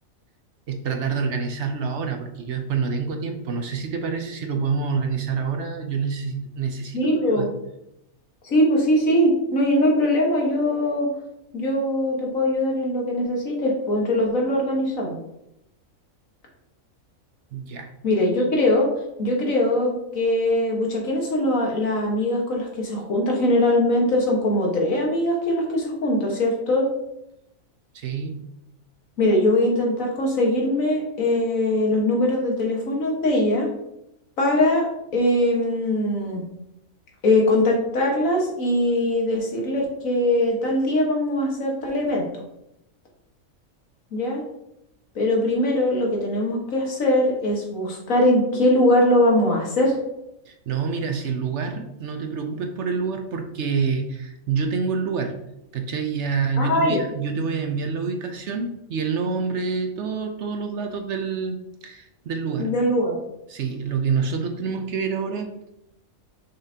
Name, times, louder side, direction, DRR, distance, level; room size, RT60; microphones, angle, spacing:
voice 1, 0.7-7.5 17.5-17.9 27.9-28.5 50.5-55.5 55.7-61.6 61.8-62.8 63.5-65.5, right 5 dB, 60° right, 5 dB, 0.9 m, -27 dB
voice 2, 6.9-7.5 8.4-11.1 11.5-15.2 18.0-18.9 19.2-26.9 29.2-33.7 34.4-34.9 35.1-36.4 37.2-42.4 44.1-44.4 45.2-50.0 56.6-57.0 62.6-63.2, left 1 dB, 70° left, 0 dB, 1.9 m, -21 dB
6.6 x 5.7 x 2.8 m, 0.83 s
omnidirectional pair, 1.5 m